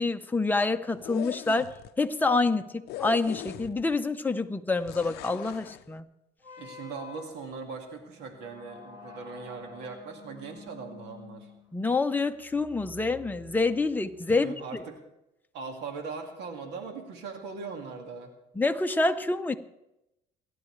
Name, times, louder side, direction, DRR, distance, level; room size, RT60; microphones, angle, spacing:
voice 1, 0.0-6.0 11.7-14.5 18.6-19.6, left 3 dB, 10° left, 6 dB, 0.8 m, -27 dB
sound 1, 0.9-1.9 2.9-4.0 4.9-5.8, left 14 dB, 75° left, 0.5 m, -39 dB
sound 2, 6.4-14.2, left 3 dB, 25° right, 3.7 m, -49 dB
voice 2, 6.6-11.5 14.3-15.0 15.5-18.3, right 4 dB, 85° right, 4 dB, 2.2 m, -40 dB
28.0 x 11.0 x 3.3 m, 0.90 s
cardioid pair, 110°, 17 cm